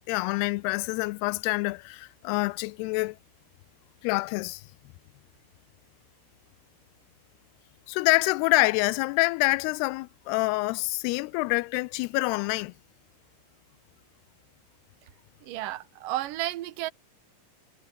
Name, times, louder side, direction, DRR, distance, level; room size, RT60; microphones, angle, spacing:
voice 1, 0.1-3.2 4.0-4.6 7.9-12.7, left 24 dB, 85° left, 2.5 m, -26 dB
voice 2, 15.4-16.9, right 15 dB, 65° right, 2.6 m, -32 dB
omnidirectional pair, 4.7 m